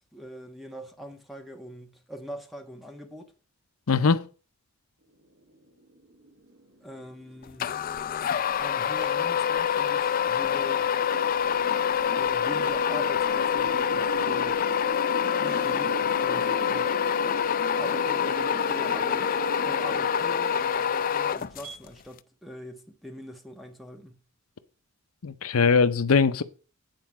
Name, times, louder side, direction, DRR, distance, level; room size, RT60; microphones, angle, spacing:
voice 1, 0.1-3.3 6.8-7.8 8.6-10.9 12.2-14.6 15.4-17.0 17.8-24.2, left 1 dB, ahead, 1.3 m, -42 dB
voice 2, 3.9-4.2 25.2-26.4, left 5 dB, 75° left, 0.7 m, -21 dB
sound 1, 5.4-21.8, right 1 dB, 75° right, 1.5 m, -40 dB
sound 2, 7.6-21.9, left 8 dB, 40° left, 0.4 m, -26 dB
9.2 x 4.6 x 7.5 m
head